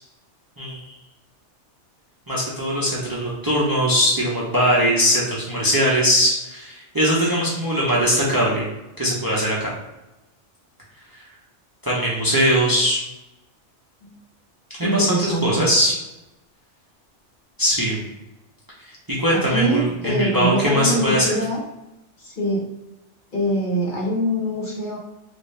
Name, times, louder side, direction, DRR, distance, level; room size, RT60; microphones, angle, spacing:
voice 1, 0.6-0.9 2.3-8.7 9.0-9.7 11.8-13.0 14.8-15.9 17.6-18.0 19.1-21.3, equal, 20° right, -5 dB, 0.7 m, -20 dB
voice 2, 14.8-15.7 19.3-21.6 22.2-22.6 23.3-25.0, right 1 dB, 45° left, -4 dB, 1.0 m, -24 dB
3.3 x 2.6 x 3.3 m, 0.97 s
omnidirectional pair, 1.2 m